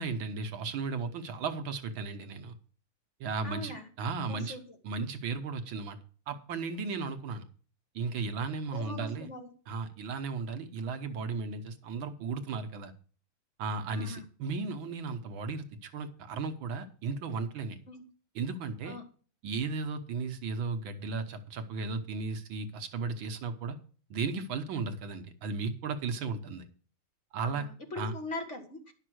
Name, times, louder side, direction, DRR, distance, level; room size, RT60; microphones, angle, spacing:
voice 1, 0.0-2.6 3.2-4.6 4.8-6.0 6.3-7.4 7.9-9.3 9.7-12.9 13.6-17.8 18.3-19.0 19.4-23.8 24.1-26.7 27.3-27.7 28.0-28.1, right 4 dB, 70° right, 7 dB, 1.8 m, -35 dB
voice 2, 3.4-3.9 4.3-4.8 8.7-9.5 13.9-14.2 17.9-18.0 18.8-19.0 27.4-28.9, left 2 dB, 35° left, 4 dB, 2.0 m, -41 dB
11.0 x 6.7 x 6.2 m, 0.41 s
omnidirectional pair, 2.3 m